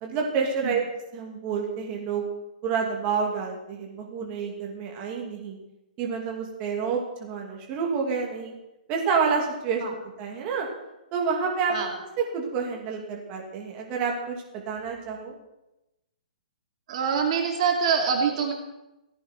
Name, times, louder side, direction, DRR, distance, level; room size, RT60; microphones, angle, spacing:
voice 1, 0.0-0.8 1.1-2.2 2.6-5.6 6.0-8.5 8.9-10.7 11.1-14.4 14.7-15.3, right 5 dB, 25° right, -1 dB, 2.7 m, -28 dB
voice 2, 16.9-18.5, right 6 dB, 45° right, 2 dB, 2.7 m, -25 dB
17.5 x 16.5 x 4.5 m, 0.92 s
hypercardioid pair, 165°, 5 cm